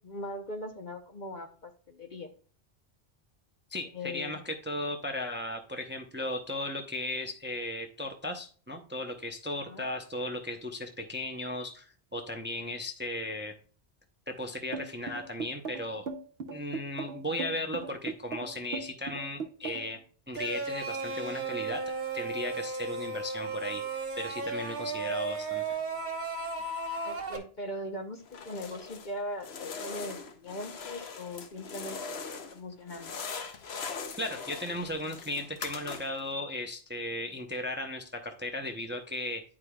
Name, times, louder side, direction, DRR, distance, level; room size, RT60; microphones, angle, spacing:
voice 1, 0.0-2.3 3.9-4.4 9.7-9.8 27.0-32.2 32.5-33.1, left 1 dB, 45° left, 6 dB, 0.9 m, -40 dB
voice 2, 3.7-13.5 14.3-16.0 16.5-20.0 20.3-21.8 22.1-25.8 34.2-39.4, left 1 dB, 10° right, 4 dB, 0.6 m, -36 dB
sound 1, 14.7-20.0, right 4 dB, 65° right, 1.0 m, -38 dB
sound 2, 20.3-27.4, right 3 dB, 45° right, 1.3 m, -34 dB
sound 3, 28.3-29.1 29.4-32.6 32.9-36.3, left 5 dB, 70° left, 1.1 m, -41 dB
10.5 x 4.8 x 2.3 m, 0.41 s
omnidirectional pair, 1.1 m